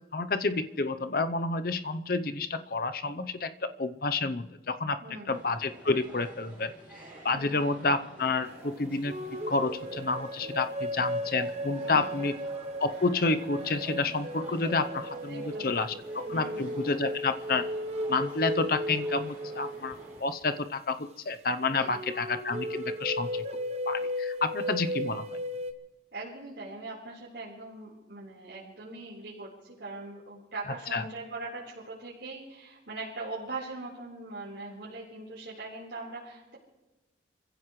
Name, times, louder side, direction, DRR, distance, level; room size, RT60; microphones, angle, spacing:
voice 1, 0.1-5.0 5.3-6.7 7.2-9.2 9.5-12.4 12.8-17.6 18.1-23.4 23.9-25.3 30.9-31.0, left 3 dB, 50° left, 10 dB, 0.7 m, -29 dB
voice 2, 5.0-5.4 7.3-7.6 11.8-12.2 15.2-16.0 16.3-16.6 21.7-22.0 26.1-36.6, right 3 dB, 80° right, -8 dB, 4.3 m, -41 dB
sound 1, 5.3-20.2, right 1 dB, 10° right, 6.5 m, -50 dB
sound 2, 9.0-20.4 21.8-25.7, equal, 35° right, 1.0 m, -35 dB
28.0 x 15.5 x 3.2 m, 1.1 s
head